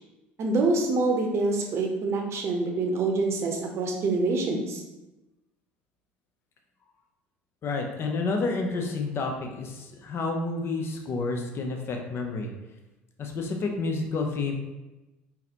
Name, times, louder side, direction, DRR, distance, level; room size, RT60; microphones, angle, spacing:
voice 1, 0.4-4.8, right 3 dB, 50° right, 2 dB, 0.7 m, -26 dB
voice 2, 7.6-12.5 13.2-14.5, left 3 dB, 45° left, 3 dB, 0.6 m, -30 dB
3.9 x 2.8 x 2.8 m, 1.0 s
hypercardioid pair, 65°, 6 cm